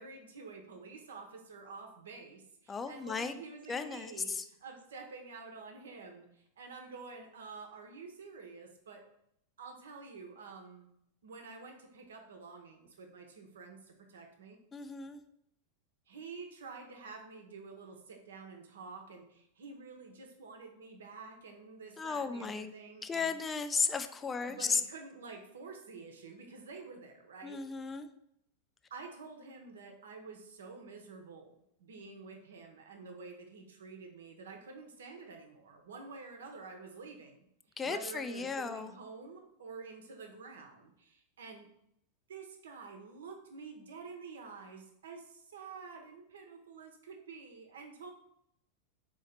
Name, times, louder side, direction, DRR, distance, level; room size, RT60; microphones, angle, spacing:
voice 1, 0.0-9.0 9.6-10.9 11.2-14.6 16.1-23.3 24.4-27.6 28.9-37.4 37.8-41.7 42.3-48.1, right 4 dB, 80° right, 3 dB, 0.8 m, -49 dB
voice 2, 2.7-3.4 3.7-4.4 14.7-15.2 22.0-22.7 23.0-24.8 27.4-28.1 37.8-38.9, left 5 dB, 20° left, 9 dB, 0.4 m, -35 dB
3.9 x 3.0 x 4.3 m, 0.75 s
hypercardioid pair, 100°, 0 cm